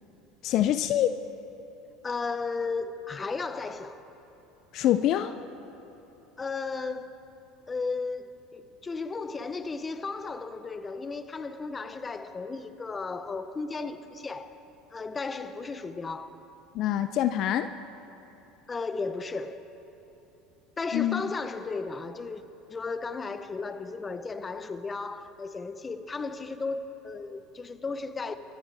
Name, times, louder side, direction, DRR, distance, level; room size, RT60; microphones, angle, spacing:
voice 1, 0.4-1.1 4.7-5.3 16.7-17.7 20.9-21.2, left 12 dB, 55° left, 0.5 m, -25 dB
voice 2, 2.0-4.0 6.4-7.2 7.7-14.5 14.9-16.3 18.7-19.6 20.8-22.4 22.7-28.4, left 4 dB, 25° left, 0.9 m, -34 dB
29.0 x 14.5 x 3.5 m
supercardioid pair, 100°, 0 cm